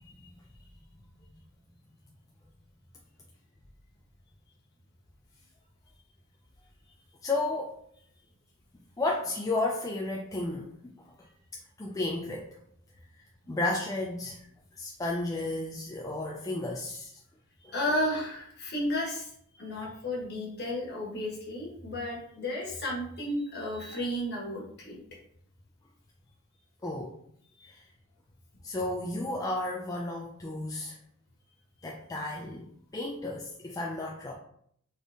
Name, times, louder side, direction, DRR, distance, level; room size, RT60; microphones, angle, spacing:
voice 1, 7.2-7.8 9.0-10.9 11.2-11.3 11.8-12.6 13.5-14.5 14.8-17.2 17.6-17.7 26.8-27.2 27.6-27.8 28.6-31.0 31.8-34.3, left 2 dB, 15° left, -1 dB, 0.4 m, -33 dB
voice 2, 17.6-24.9 27.6-27.7, left 1 dB, 50° left, -3 dB, 1.5 m, -33 dB
4.0 x 3.5 x 3.5 m, 0.66 s
head